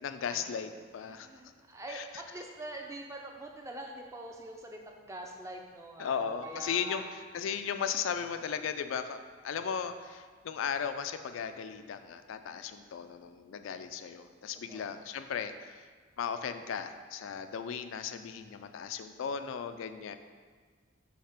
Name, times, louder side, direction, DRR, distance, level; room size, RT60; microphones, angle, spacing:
voice 1, 0.0-1.3 1.9-2.0 6.0-7.0 7.3-15.8 16.2-20.2, left 7 dB, 80° left, 9 dB, 0.3 m, -36 dB
voice 2, 1.0-7.1 14.7-14.9, right 1 dB, 15° right, 1 dB, 0.5 m, -44 dB
Piano, 6.4-8.4 9.0-9.1, right 2 dB, 70° right, 0.8 m, -53 dB
6.7 x 2.8 x 5.7 m, 1.5 s
head